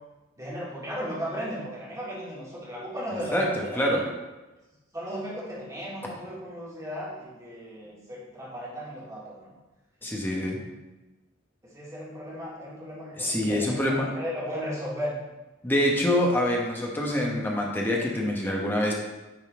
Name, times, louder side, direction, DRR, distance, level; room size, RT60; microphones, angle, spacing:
voice 1, 0.4-4.0 4.9-9.5 11.6-15.2, equal, 15° right, -7 dB, 2.1 m, -35 dB
voice 2, 3.3-4.0 10.0-10.6 13.2-14.1 15.6-18.9, left 1 dB, 10° left, -2 dB, 1.1 m, -25 dB
9.0 x 4.1 x 3.7 m, 1.1 s
head